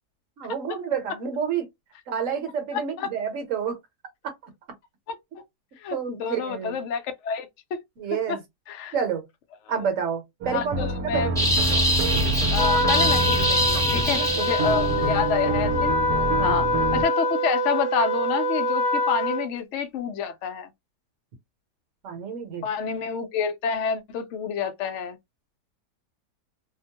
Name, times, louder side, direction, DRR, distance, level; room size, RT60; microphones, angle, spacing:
voice 1, 0.4-1.7 2.1-3.8 4.2-4.5 5.9-6.8 8.0-8.4 8.9-9.3 9.7-12.0 13.7-14.5 16.4-16.6 22.0-22.7, right 7 dB, 55° right, 1.1 m, -30 dB
voice 2, 2.7-3.1 5.1-5.4 5.8-7.8 8.3-8.4 8.7-8.9 9.7-9.8 10.5-11.3 12.5-15.9 16.4-20.7 22.6-25.2, left 6 dB, 65° left, 0.7 m, -28 dB
sound 1, 10.4-17.0, right 1 dB, 80° right, 1.1 m, -27 dB
sound 2, 11.4-15.0, equal, 5° left, 0.7 m, -24 dB
Trumpet, 12.6-19.5, left 1 dB, 30° left, 1.0 m, -25 dB
2.8 x 2.1 x 2.8 m
omnidirectional pair, 1.8 m